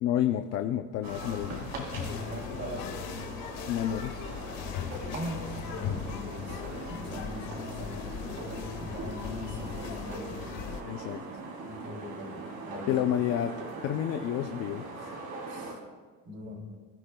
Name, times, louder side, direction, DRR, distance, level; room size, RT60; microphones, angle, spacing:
voice 1, 0.0-1.9 3.7-4.2 10.8-11.2 12.9-13.6 13.8-15.2, left 11 dB, 50° left, 7 dB, 0.6 m, -30 dB
sound 1, 1.0-10.8, left 7 dB, 90° left, 1.9 m, -38 dB
sound 2, 1.0-15.7, right 3 dB, 55° right, 3.3 m, -42 dB
voice 2, 2.0-3.3 4.2-4.5 5.1-10.8 11.6-13.0 15.5-15.8 16.2-16.7, left 1 dB, 35° right, 1 dB, 2.6 m, -41 dB
24.0 x 14.5 x 2.3 m, 1.5 s
cardioid pair, 180°, 34 cm